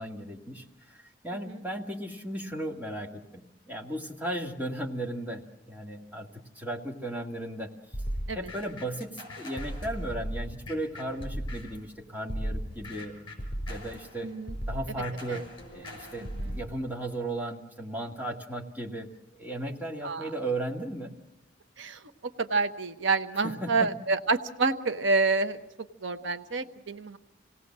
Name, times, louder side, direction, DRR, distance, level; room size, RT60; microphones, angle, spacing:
voice 1, 0.0-6.3 6.6-7.7 8.4-13.2 13.7-14.3 14.7-19.1 19.3-21.1 23.4-23.9, right 1 dB, 10° right, -1 dB, 2.0 m, -36 dB
sound 1, 7.9-11.9 12.3-16.7, equal, 25° left, 5.6 m, -37 dB
voice 2, 14.2-14.5 15.3-15.4 16.4-16.5 20.0-20.3 21.8-22.0 22.4-25.6 26.0-27.2, right 3 dB, 80° right, 8 dB, 1.0 m, -28 dB
27.0 x 18.0 x 7.5 m, 0.89 s
head